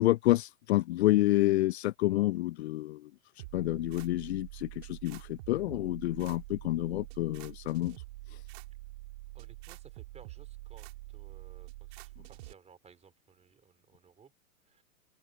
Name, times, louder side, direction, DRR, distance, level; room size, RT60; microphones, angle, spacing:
voice 1, 0.0-3.1 3.5-8.0 8.3-8.4, left 17 dB, 50° left, 0.8 m, -28 dB
sound 1, 3.4-12.5, right 21 dB, 45° right, 2.8 m, -46 dB
voice 2, 9.3-14.3 14.7-14.8, right 6 dB, 15° right, 4.6 m, -59 dB
open air
figure-of-eight pair, 110°, 42 cm